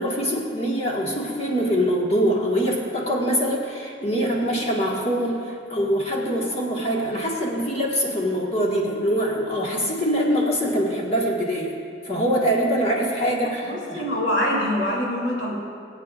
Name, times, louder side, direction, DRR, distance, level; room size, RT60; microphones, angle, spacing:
voice 1, 0.0-11.7 12.0-14.0, equal, 35° left, -3 dB, 1.9 m, -24 dB
voice 2, 13.6-15.5, left 1 dB, 60° left, -4 dB, 3.3 m, -24 dB
24.5 x 8.3 x 2.6 m, 2.4 s
head